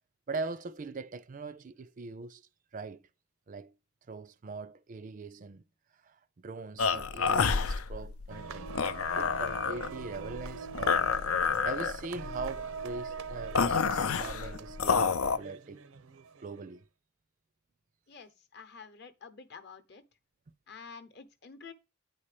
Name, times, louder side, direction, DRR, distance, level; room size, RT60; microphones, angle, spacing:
voice 1, 0.3-2.4 2.7-3.1 3.5-3.7 4.1-5.6 6.0-8.7 9.1-15.9 16.4-16.9, right 3 dB, 40° right, 0.4 m, -41 dB
sound 1, 6.8-15.4, left 5 dB, 85° left, 0.6 m, -29 dB
sound 2, 8.3-16.6, right 5 dB, 85° right, 0.6 m, -43 dB
voice 2, 18.1-20.0 20.7-21.7, left 5 dB, 50° left, 0.9 m, -49 dB
9.1 x 4.3 x 4.9 m
head